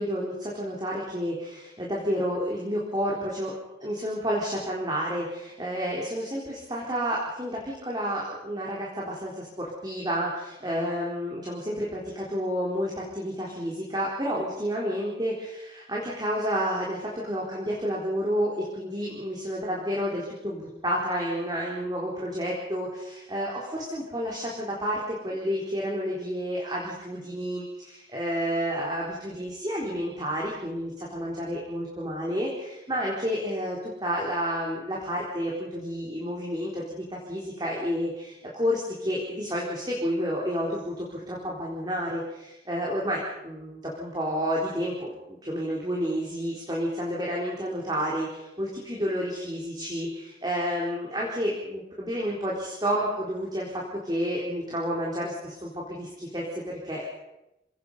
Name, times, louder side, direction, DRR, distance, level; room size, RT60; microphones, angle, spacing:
voice 1, 0.0-57.1, equal, 25° right, -4 dB, 4.0 m, -30 dB
27.5 x 18.5 x 5.6 m, 0.91 s
head